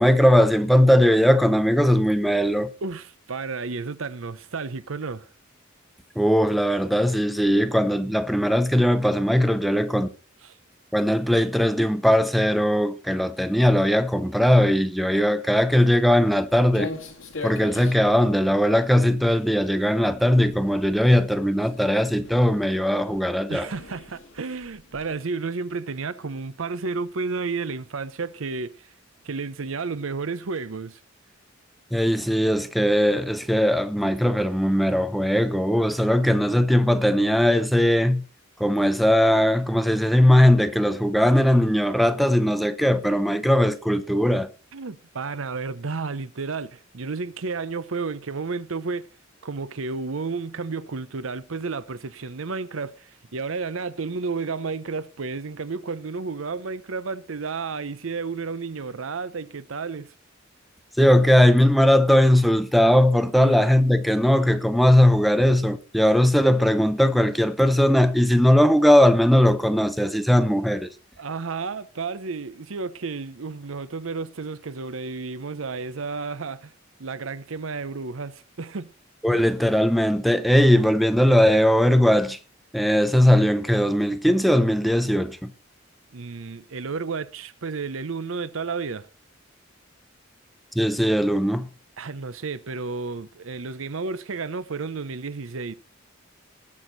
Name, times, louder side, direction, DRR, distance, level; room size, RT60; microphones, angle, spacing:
voice 1, 0.0-2.7 6.2-10.1 10.9-16.9 17.4-23.7 31.9-38.2 38.6-44.5 61.0-70.9 79.2-82.4 82.7-85.5 90.7-91.7, equal, ahead, 0.7 m, -19 dB
voice 2, 2.8-5.3 10.4-10.5 23.5-28.9 29.2-31.0 44.7-49.1 49.4-60.1 63.4-63.6 71.2-76.7 77.0-78.9 79.3-79.4 86.1-89.1 92.0-95.7, right 4 dB, 80° right, 0.7 m, -32 dB
Walk footsteps, 15.6-25.1, left 3 dB, 75° left, 2.2 m, -42 dB
19.0 x 6.4 x 4.0 m
head